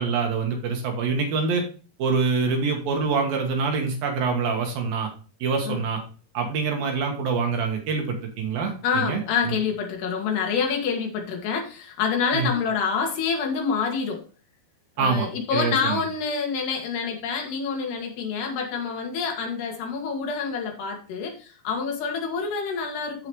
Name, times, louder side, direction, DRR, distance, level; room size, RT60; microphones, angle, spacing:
voice 1, 0.0-1.6 2.0-5.1 5.4-6.0 6.3-9.5 12.3-12.5 15.0-16.0, right 5 dB, 70° right, 2 dB, 3.0 m, -25 dB
voice 2, 8.8-14.2 15.0-23.3, left 6 dB, 90° left, 2 dB, 3.8 m, -27 dB
14.0 x 4.9 x 3.1 m, 0.36 s
omnidirectional pair, 4.5 m